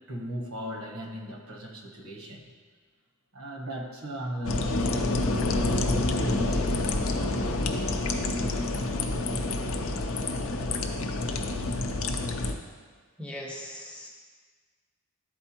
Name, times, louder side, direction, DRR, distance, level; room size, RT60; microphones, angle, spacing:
voice 1, 0.1-2.4 3.3-5.2 5.7-8.2 10.2-10.5, equal, 65° right, 1 dB, 1.0 m, -38 dB
sound 1, 4.4-12.5, left 2 dB, 65° left, 0.5 m, -28 dB
voice 2, 13.2-14.1, left 1 dB, 5° left, -1 dB, 0.8 m, -39 dB
11.0 x 4.4 x 2.9 m, 1.5 s
head